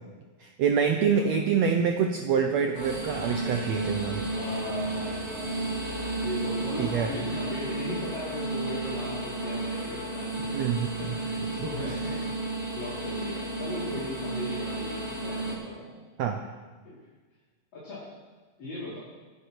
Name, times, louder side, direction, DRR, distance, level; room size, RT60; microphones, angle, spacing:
voice 1, 0.4-4.3 6.8-7.1 10.5-10.9 11.6-11.7 16.2-16.4, right 7 dB, 85° right, 5 dB, 1.5 m, -26 dB
sound 1, 2.7-15.5, right 2 dB, 20° right, 3.7 m, -33 dB
voice 2, 4.3-5.5 6.2-12.4 12.7-15.9 16.8-17.0 17.7-18.1 18.6-19.0, left 1 dB, 50° left, -11 dB, 6.2 m, -37 dB
24.5 x 10.0 x 4.7 m, 1.4 s
omnidirectional pair, 4.2 m